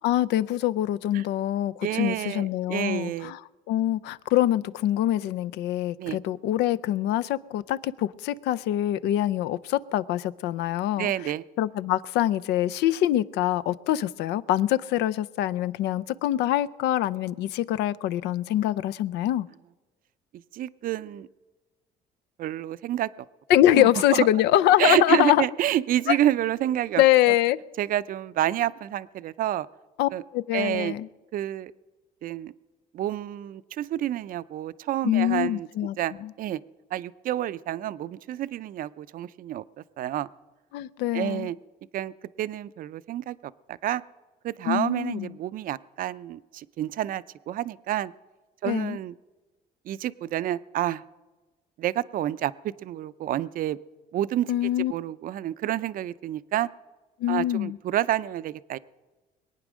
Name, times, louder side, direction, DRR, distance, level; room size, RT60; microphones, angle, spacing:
voice 1, 0.0-3.4 3.7-11.1 11.6-19.5 23.5-25.4 26.1-26.2 27.0-27.6 30.0-31.1 35.0-36.0 36.2-36.3 40.7-41.5 44.7-45.3 48.6-49.0 54.5-54.9 57.2-57.8, left 13 dB, 85° left, 0.5 m, -24 dB
voice 2, 1.8-3.3 6.0-6.2 11.0-11.4 20.5-21.3 22.4-23.1 23.7-24.3 24.8-27.0 27.8-29.7 30.1-30.2 30.5-30.9 31.3-31.7 32.2-32.5 32.9-35.7 36.0-36.6 36.9-39.6 40.0-40.3 41.1-41.6 41.9-44.0 44.4-48.1 48.6-49.1 49.9-51.0 51.8-52.5 52.8-53.8 54.1-54.5 54.9-56.7 57.3-58.8, right 12 dB, 55° right, 0.5 m, -28 dB
22.5 x 9.0 x 6.2 m
cardioid pair, 110°, 17 cm